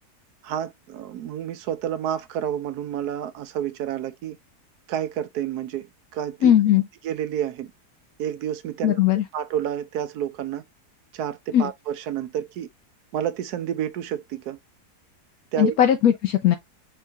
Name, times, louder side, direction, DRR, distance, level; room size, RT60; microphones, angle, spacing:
voice 1, 0.4-4.4 4.9-6.5 7.0-7.7 8.2-9.0 9.3-10.6 11.1-12.7 13.1-14.6 15.5-15.7, right 10 dB, 75° right, 1.1 m, -29 dB
voice 2, 6.4-6.8 8.8-9.2 11.5-11.7 15.6-16.5, left 10 dB, 70° left, 1.0 m, -18 dB
4.6 x 2.6 x 3.4 m
omnidirectional pair, 1.7 m